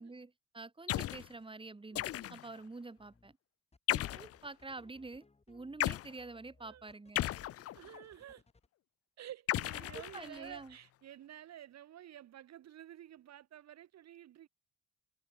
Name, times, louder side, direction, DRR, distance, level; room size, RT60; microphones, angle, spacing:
voice 1, 0.0-3.4 3.9-7.3 9.8-10.7, right 3 dB, 15° right, 2.3 m, -48 dB
sound 1, 0.9-1.3 1.9-2.6 3.9-4.4 5.8-6.1 7.1-8.0 9.5-10.5, left 14 dB, 50° left, 0.4 m, -35 dB
voice 2, 1.9-2.3 6.6-6.9 7.2-8.4 9.2-14.5, right 11 dB, 60° right, 1.0 m, -52 dB
sound 2, 3.0-3.3 3.7-8.7, left 3 dB, 20° left, 3.0 m, -65 dB
cardioid pair, 90°, 30 cm